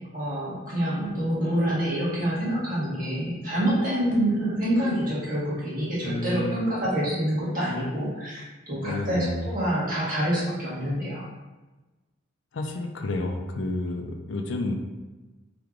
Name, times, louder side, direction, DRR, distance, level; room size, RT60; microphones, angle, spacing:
voice 1, 0.1-11.3, right 1 dB, 40° right, -8 dB, 1.5 m, -27 dB
sound 1, 1.8-2.0 2.8-3.3 3.5-4.0 4.7-5.1 5.7-6.2, right 1 dB, 20° right, 1.2 m, -45 dB
voice 2, 6.0-6.7 8.8-9.4 12.5-14.8, left 2 dB, 65° left, 4 dB, 0.4 m, -30 dB
3.4 x 3.3 x 3.7 m, 1.2 s
head